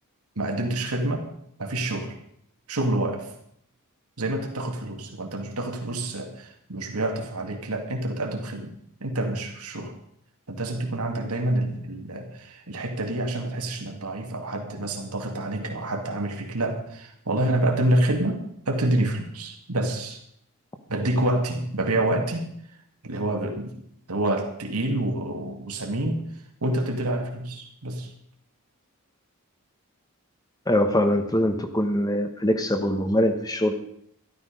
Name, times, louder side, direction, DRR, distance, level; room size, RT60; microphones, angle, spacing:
voice 1, 0.4-1.3 1.6-2.2 2.7-3.3 4.2-8.7 9.0-9.9 10.5-20.2 20.9-22.5 23.0-23.8 24.1-26.3 26.6-28.1, right 1 dB, 80° right, 3 dB, 2.2 m, -27 dB
voice 2, 30.7-33.7, left 1 dB, 15° left, 6 dB, 1.1 m, -23 dB
13.5 x 12.0 x 5.2 m, 0.70 s
head